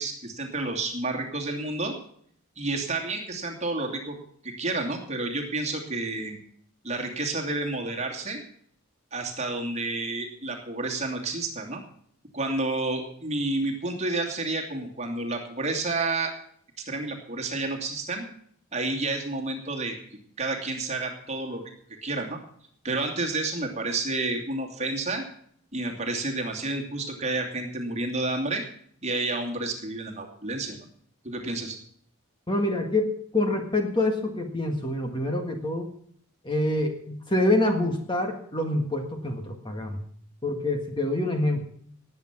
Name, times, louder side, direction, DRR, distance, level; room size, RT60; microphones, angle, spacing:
voice 1, 0.0-1.9 2.6-4.2 4.4-6.4 6.8-8.4 9.1-11.8 12.3-16.3 16.9-18.2 18.7-20.0 20.4-21.6 22.0-22.4 22.8-25.2 25.7-28.6 29.0-30.8 31.2-31.8, right 2 dB, 30° right, 1 dB, 2.6 m, -30 dB
voice 2, 32.5-35.9 36.4-40.0 40.4-41.6, left 1 dB, 20° left, 4 dB, 1.6 m, -26 dB
18.5 x 8.4 x 6.0 m, 0.63 s
head